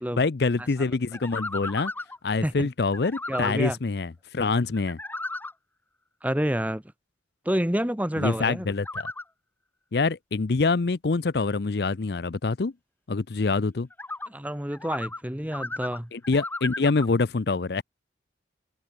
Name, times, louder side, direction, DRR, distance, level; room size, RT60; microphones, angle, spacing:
voice 1, 0.1-1.9 2.2-5.0 8.2-9.1 9.9-12.7 13.1-13.9 16.1-17.8, left 3 dB, 60° left, 0.6 m, -25 dB
sound 1, 1.1-2.2 2.9-3.5 4.8-5.5 8.8-9.2 13.9-14.3 14.7-15.2 15.5-17.1, left 2 dB, 10° left, 4.1 m, -35 dB
voice 2, 3.3-3.8 6.2-6.8 7.4-8.7 14.3-16.1, equal, 10° right, 1.4 m, -28 dB
head